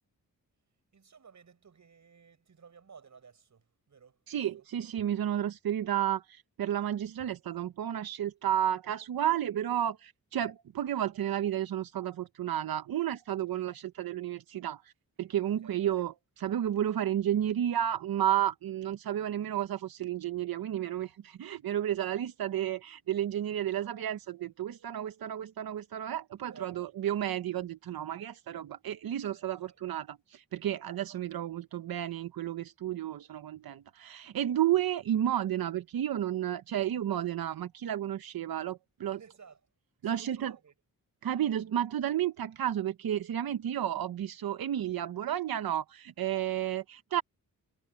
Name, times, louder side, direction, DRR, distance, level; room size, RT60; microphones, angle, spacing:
voice 1, 0.9-4.6 13.4-13.6 15.6-15.8 26.5-26.9 29.3-29.8 30.7-30.9 39.1-39.6 40.0-40.7 41.3-41.4, right 6 dB, 55° right, 5.8 m, -56 dB
voice 2, 4.3-14.9 15.2-39.2 40.0-40.5 41.2-47.2, right 11 dB, 90° right, 0.8 m, -32 dB
wide cardioid pair, 135°, 35 cm